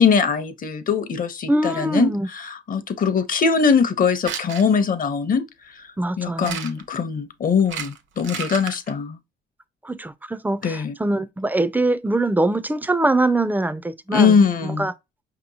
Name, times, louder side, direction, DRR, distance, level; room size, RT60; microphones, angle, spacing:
voice 1, 0.0-5.9 6.2-9.2 10.6-11.0 14.1-14.9, left 6 dB, 45° left, 0.7 m, -21 dB
voice 2, 1.5-2.3 6.0-6.6 9.9-10.6 11.0-14.3 14.8-14.9, right 2 dB, 10° right, 0.4 m, -22 dB
sound 1, 4.1-4.6 6.4-6.9 7.6-8.9, right 7 dB, 75° right, 0.8 m, -32 dB
5.1 x 2.9 x 2.7 m
cardioid pair, 90°, 20 cm